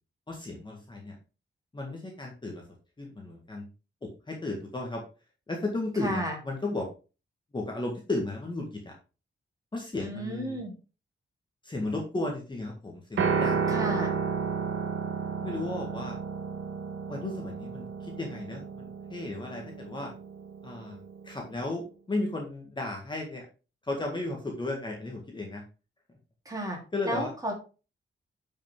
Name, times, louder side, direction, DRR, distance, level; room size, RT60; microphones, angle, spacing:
voice 1, 0.3-1.2 1.7-2.6 3.0-3.7 4.0-5.0 5.5-6.9 7.5-8.9 9.7-10.6 11.6-14.1 15.4-16.2 17.1-20.1 20.6-21.0 21.2-23.5 23.8-25.6 26.9-27.5, left 2 dB, 20° left, 0 dB, 1.8 m, -34 dB
voice 2, 6.0-6.4 10.0-10.7 13.7-14.1 26.5-26.8 27.1-27.5, equal, 15° right, -1 dB, 3.5 m, -32 dB
Piano, 13.2-21.4, right 5 dB, 80° right, 1.4 m, -32 dB
10.5 x 5.6 x 3.8 m, 0.32 s
wide cardioid pair, 150°, 20 cm